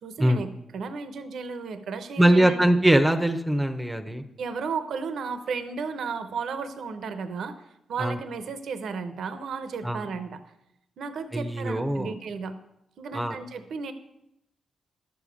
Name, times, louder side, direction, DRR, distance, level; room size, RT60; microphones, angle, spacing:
voice 1, 0.0-2.7 4.4-10.4 11.0-12.6 13.0-13.9, right 5 dB, 75° right, 9 dB, 0.7 m, -34 dB
voice 2, 2.2-4.2 8.0-8.2 9.8-10.0 11.3-12.1 13.1-13.4, right 1 dB, 10° right, 7 dB, 0.8 m, -22 dB
11.5 x 7.0 x 5.1 m, 0.84 s
supercardioid pair, 55°, 0 cm